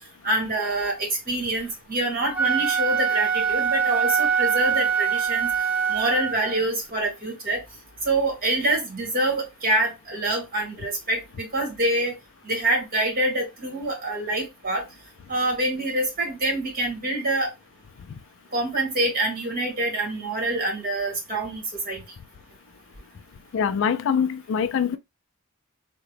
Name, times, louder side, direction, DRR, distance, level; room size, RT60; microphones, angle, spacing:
voice 1, 0.2-5.5 5.9-7.6 8.0-12.2 12.4-14.8 15.3-17.5 18.5-22.0, right 1 dB, 45° right, 1.6 m, -26 dB
Wind instrument woodwind instrument, 2.2-6.6, right 7 dB, 5° right, 0.4 m, -23 dB
voice 2, 23.5-25.0, left 7 dB, 60° left, 0.3 m, -23 dB
3.7 x 2.2 x 3.2 m
head